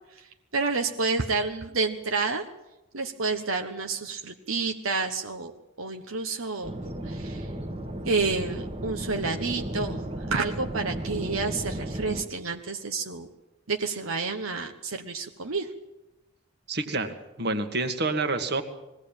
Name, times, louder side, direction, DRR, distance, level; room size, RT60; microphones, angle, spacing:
voice 1, 0.1-2.4 2.9-5.5 5.8-6.7 7.0-7.5 8.0-13.3 13.7-15.7, right 4 dB, 80° right, 5 dB, 1.3 m, -29 dB
sound 1, 6.6-12.2, right 1 dB, 30° right, 1.7 m, -34 dB
voice 2, 16.7-18.6, right 3 dB, 50° right, 7 dB, 1.9 m, -28 dB
21.5 x 17.0 x 8.9 m, 1.0 s
head